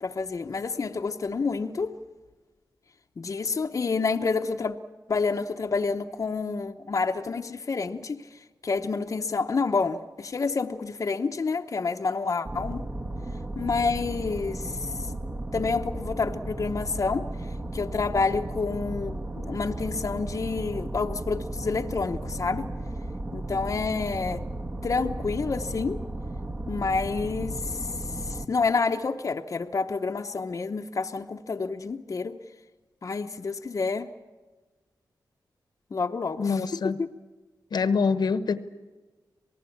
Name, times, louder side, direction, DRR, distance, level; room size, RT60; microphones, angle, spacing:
voice 1, 0.0-1.9 3.2-4.8 5.1-12.8 13.6-15.1 15.5-17.3 17.7-22.7 23.3-24.4 24.8-26.0 26.7-32.4 33.0-34.1 35.9-37.1, left 4 dB, 45° left, 0.9 m, -29 dB
sound 1, 12.4-28.5, right 1 dB, 30° right, 1.4 m, -35 dB
voice 2, 36.4-37.0 37.7-38.6, left 5 dB, 70° left, 1.1 m, -25 dB
26.5 x 19.0 x 8.6 m
wide cardioid pair, 90°, 7 cm